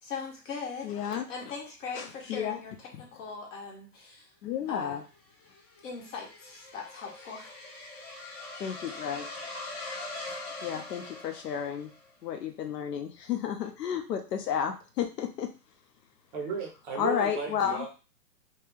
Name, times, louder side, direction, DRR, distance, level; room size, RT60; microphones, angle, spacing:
voice 1, 0.0-0.9 1.3-4.3 4.7-5.0 5.8-7.6, left 5 dB, 50° left, -1 dB, 1.4 m, -40 dB
voice 2, 0.8-1.2 2.0-2.6 4.4-5.0 8.6-9.3 10.6-11.9 12.2-15.5 17.0-17.9, left 8 dB, 75° left, 4 dB, 0.7 m, -32 dB
sound 1, 5.0-12.1, left 2 dB, 25° left, 0.7 m, -42 dB
voice 3, 16.3-17.9, right 4 dB, 30° right, 1 dB, 0.6 m, -35 dB
2.8 x 2.2 x 3.4 m, 0.33 s
hypercardioid pair, 130°, 49 cm